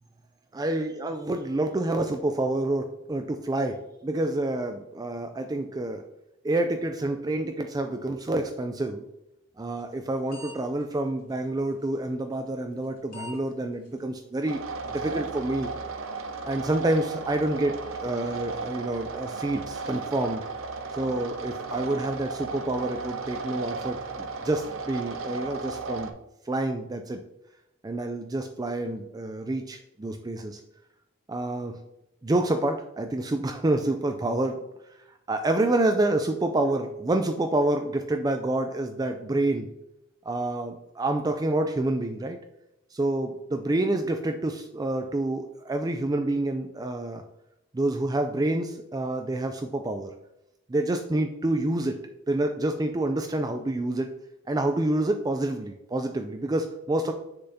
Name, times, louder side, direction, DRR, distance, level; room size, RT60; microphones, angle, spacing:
voice 1, 0.5-6.0 6.4-9.0 9.6-14.6 14.9-15.7 16.5-20.4 20.9-24.0 24.4-26.1 26.5-27.2 27.8-30.6 31.3-31.8 32.2-34.6 35.3-39.7 40.2-42.4 42.9-47.2 47.7-50.1 50.7-52.0 52.3-54.1 54.5-57.1, right 2 dB, 20° right, 6 dB, 0.3 m, -28 dB
sound 1, 9.8-10.0 10.3-10.5 10.8-10.9 11.8-12.0 12.8-12.9 13.1-13.4 13.8-13.9 14.4-14.5 14.9-15.0, left 3 dB, 45° left, 2.8 m, -41 dB
sound 2, 14.5-26.1, right 4 dB, 80° right, 0.7 m, -35 dB
7.7 x 6.6 x 2.7 m, 0.87 s
head